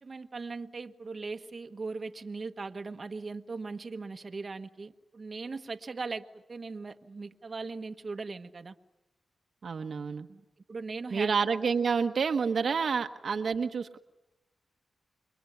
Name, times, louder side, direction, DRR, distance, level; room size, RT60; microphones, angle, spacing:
voice 1, 0.0-8.7 10.3-10.4 10.7-11.3, right 4 dB, 50° right, 6 dB, 1.3 m, -39 dB
voice 2, 9.6-10.3 11.1-14.0, right 5 dB, 65° right, 7 dB, 1.2 m, -28 dB
27.5 x 22.5 x 9.5 m, 0.95 s
cardioid pair, 50°, 0 cm